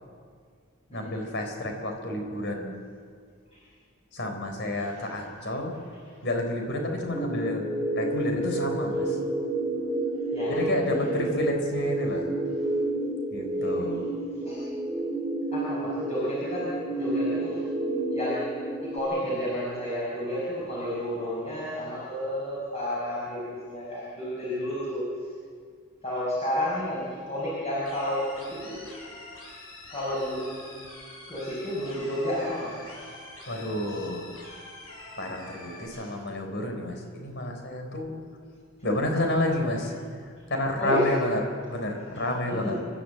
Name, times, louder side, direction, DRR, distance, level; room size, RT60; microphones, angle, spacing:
voice 1, 0.9-2.8 4.1-5.8 6.2-9.2 10.5-12.2 13.3-14.0 33.4-34.3 35.2-38.1 38.8-41.4 41.7-42.8, left 1 dB, 55° left, 3 dB, 4.3 m, -30 dB
sound 1, 7.1-19.0, right 2 dB, 10° right, 3.2 m, -30 dB
voice 2, 10.3-10.6 11.0-11.4 13.6-14.0 14.4-14.6 15.5-17.6 18.1-25.0 26.0-28.9 29.9-31.0 31.3-33.1 35.9-36.0 40.8-41.1 42.4-42.8, equal, 30° left, -7 dB, 6.0 m, -31 dB
sound 2, 27.9-35.9, left 2 dB, 90° left, 7.6 m, -45 dB
29.5 x 12.5 x 8.0 m, 2.1 s
head